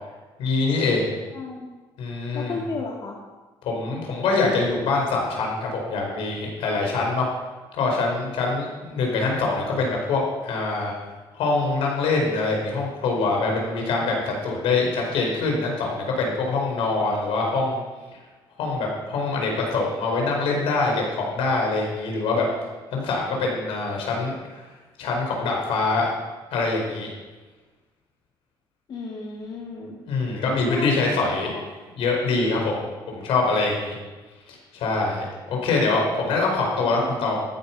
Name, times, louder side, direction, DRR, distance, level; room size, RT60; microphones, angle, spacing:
voice 1, 0.4-1.1 2.0-2.5 3.6-7.3 7.7-10.9 11.3-17.8 18.6-22.4 22.9-24.6 25.0-26.1 26.5-27.1 30.1-31.6 31.9-33.9 34.5-37.4, left 3 dB, 75° left, 0 dB, 4.9 m, -24 dB
voice 2, 1.3-1.7 2.3-3.2 28.9-30.0 30.6-31.2 31.5-31.6 37.1-37.4, left 4 dB, 50° left, -2 dB, 2.2 m, -33 dB
14.0 x 10.5 x 5.9 m, 1.3 s
cardioid pair, 100°, 9 cm